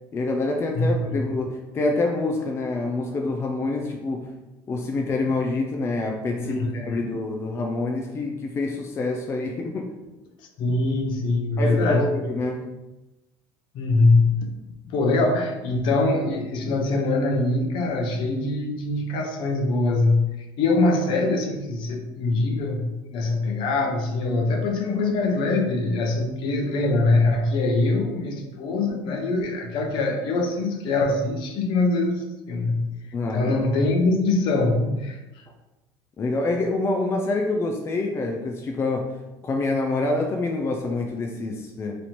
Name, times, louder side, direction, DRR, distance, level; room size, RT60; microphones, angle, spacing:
voice 1, 0.1-4.3 4.7-9.9 11.6-12.7 33.1-33.5 36.2-39.2 39.4-42.0, left 2 dB, 25° left, 2 dB, 0.4 m, -26 dB
voice 2, 0.7-1.2 6.4-7.0 10.6-12.1 13.7-14.5 14.9-32.9 33.3-35.4, left 2 dB, 60° left, 3 dB, 0.7 m, -23 dB
3.1 x 2.7 x 4.2 m, 1.0 s
cardioid pair, 125°, 9 cm